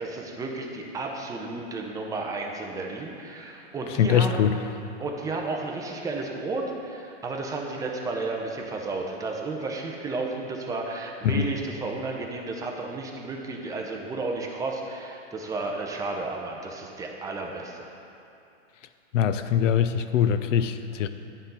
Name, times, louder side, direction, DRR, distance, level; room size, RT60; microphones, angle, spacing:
voice 1, 0.0-4.4 5.0-17.9, right 3 dB, 10° right, 0 dB, 0.5 m, -32 dB
voice 2, 4.0-4.5 11.2-11.5 19.1-21.1, left 9 dB, 90° left, 10 dB, 0.5 m, -22 dB
8.9 x 4.0 x 5.5 m, 2.7 s
hypercardioid pair, 135°, 36 cm